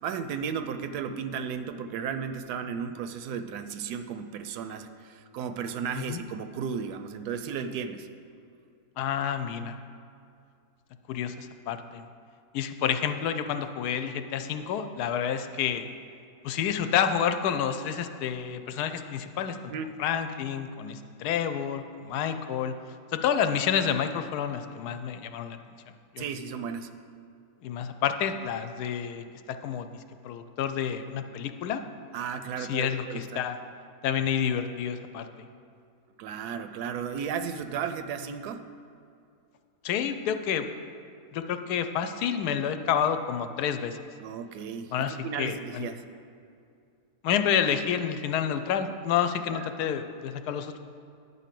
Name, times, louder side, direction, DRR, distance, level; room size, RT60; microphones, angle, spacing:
voice 1, 0.0-8.1 19.7-20.0 26.2-26.9 32.1-33.4 36.2-38.6 44.2-46.0 49.5-49.7, right 7 dB, 85° right, 9 dB, 1.1 m, -34 dB
voice 2, 9.0-9.8 11.1-12.1 12.5-15.8 16.4-19.7 20.0-22.7 23.1-25.6 25.9-26.2 27.6-29.9 30.2-31.8 32.6-33.6 34.0-35.3 39.8-40.7 41.3-44.0 44.9-45.9 47.2-50.8, left 8 dB, 80° left, 9 dB, 1.1 m, -29 dB
10.0 x 4.1 x 7.5 m, 2.5 s
omnidirectional pair, 1.7 m